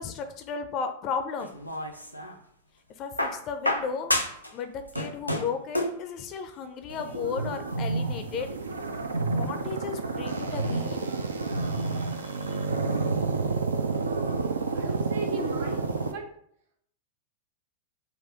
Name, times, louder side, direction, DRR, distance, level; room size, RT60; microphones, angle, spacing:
voice 1, 0.0-1.6 3.0-4.1 4.5-8.5 9.3-11.1 11.8-11.9 12.5-12.7, left 6 dB, 35° left, 7 dB, 0.5 m, -34 dB
sound 1, 1.4-2.4 3.2-4.5 4.8-6.0 7.1-7.2, left 1 dB, 90° left, 0.5 m, -29 dB
sound 2, 6.9-16.1, right 3 dB, 75° right, 0.5 m, -29 dB
voice 2, 14.7-16.3, right 4 dB, 60° right, 2 dB, 1.0 m, -36 dB
4.1 x 2.5 x 4.7 m, 0.68 s
figure-of-eight pair, 90°, 0 cm